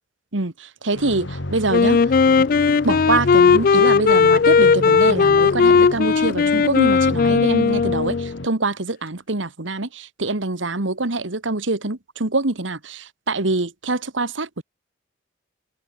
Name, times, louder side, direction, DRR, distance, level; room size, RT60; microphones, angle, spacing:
voice 1, 0.3-2.0 2.4-2.5 2.8-14.6, right 2 dB, 85° right, 1.9 m, -24 dB
sound 1, 0.9-8.5, left 1 dB, 75° left, 1.8 m, -32 dB
Wind instrument woodwind instrument, 1.7-8.4, left 5 dB, 45° left, 0.4 m, -16 dB
head